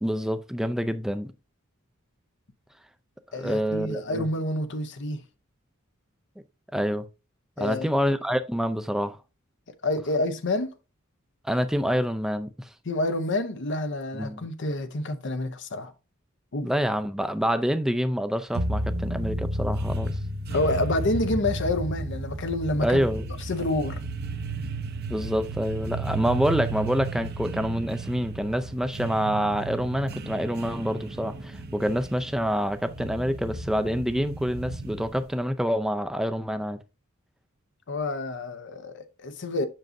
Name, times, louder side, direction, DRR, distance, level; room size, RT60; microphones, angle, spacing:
voice 1, 0.0-1.3 3.3-4.3 6.7-7.1 7.6-9.2 11.4-12.7 14.1-14.5 16.6-20.2 22.8-23.2 25.1-36.8, equal, ahead, 0.4 m, -27 dB
voice 2, 3.3-5.2 7.6-7.9 9.8-10.7 12.8-15.9 16.5-16.7 20.5-24.0 37.9-39.7, left 2 dB, 60° left, 0.8 m, -28 dB
sound 1, 18.5-35.3, right 2 dB, 50° right, 0.7 m, -33 dB
7.6 x 6.3 x 2.6 m
head